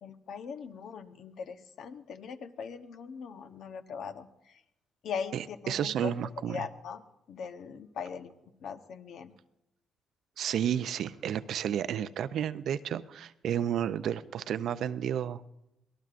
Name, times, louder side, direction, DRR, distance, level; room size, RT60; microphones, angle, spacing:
voice 1, 0.0-4.6 5.0-6.1 6.4-7.0 7.3-8.3 8.6-9.3, left 6 dB, 70° left, 8 dB, 1.0 m, -40 dB
voice 2, 5.3-6.7 10.4-15.4, right 9 dB, 70° right, 13 dB, 0.5 m, -32 dB
24.5 x 18.5 x 2.5 m, 0.89 s
cardioid pair, 90°, 0 cm